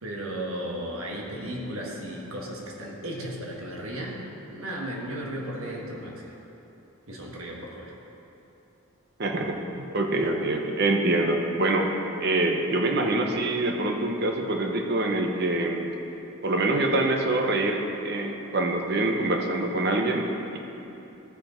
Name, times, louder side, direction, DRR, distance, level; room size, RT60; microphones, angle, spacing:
voice 1, 0.0-4.2 4.5-6.3 7.1-7.9, right 1 dB, 75° right, -2 dB, 1.5 m, -35 dB
voice 2, 9.2-11.9 12.2-15.9 16.4-20.3 20.5-20.6, right 2 dB, 50° right, 3 dB, 0.8 m, -25 dB
14.0 x 5.2 x 4.3 m, 3.0 s
head